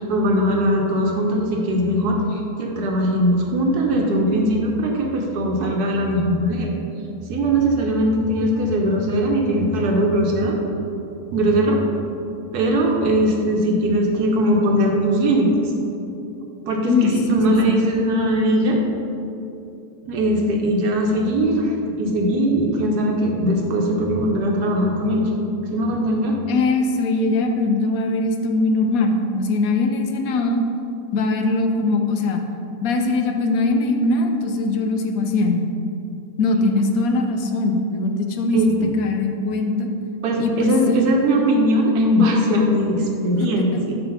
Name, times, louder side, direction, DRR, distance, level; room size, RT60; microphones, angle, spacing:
voice 1, 0.0-6.7 7.3-10.6 11.3-11.8 12.5-15.7 16.7-18.8 20.1-25.3 25.7-26.4 38.5-38.9 40.2-43.9, equal, 80° right, 0 dB, 1.3 m, -20 dB
voice 2, 16.9-17.7 26.5-30.6 31.1-32.4 32.8-35.7 36.4-38.6 39.0-39.9 40.4-41.0 43.4-43.8, left 2 dB, 70° left, 4 dB, 1.0 m, -21 dB
6.9 x 3.3 x 5.6 m, 2.7 s
omnidirectional pair, 1.7 m